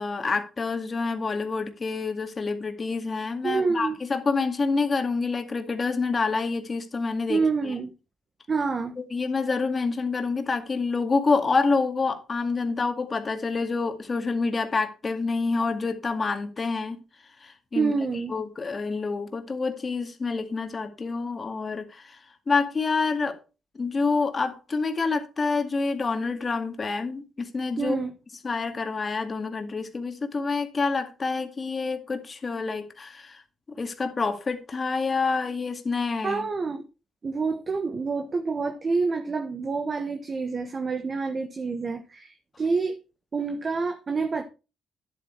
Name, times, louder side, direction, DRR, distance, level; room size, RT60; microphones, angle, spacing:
voice 1, 0.0-7.7 9.0-17.0 17.4-17.9 18.3-22.2 22.5-23.4 23.7-28.0 28.4-33.4 33.8-36.4, left 4 dB, 35° left, 2.1 m, -27 dB
voice 2, 3.4-4.0 7.3-7.9 8.5-9.0 17.7-18.4 27.8-28.1 36.2-36.8 37.2-43.0 43.3-44.4, right 4 dB, 35° right, 1.3 m, -27 dB
10.5 x 8.1 x 4.6 m
cardioid pair, 90°, 0 cm